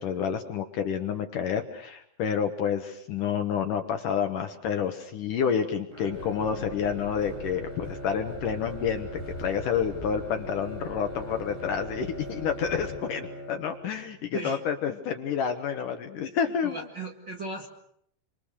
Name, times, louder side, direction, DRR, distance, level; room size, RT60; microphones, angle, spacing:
voice 1, 0.0-16.9, left 7 dB, 65° left, 6 dB, 2.4 m, -29 dB
Bowed string instrument, 5.9-14.2, equal, 15° right, 2.5 m, -41 dB
sound 1, 6.1-13.0, left 1 dB, 20° left, 0.9 m, -44 dB
voice 2, 16.6-17.7, right 2 dB, 40° right, -1 dB, 1.8 m, -36 dB
27.5 x 25.5 x 6.6 m, 0.71 s
omnidirectional pair, 4.9 m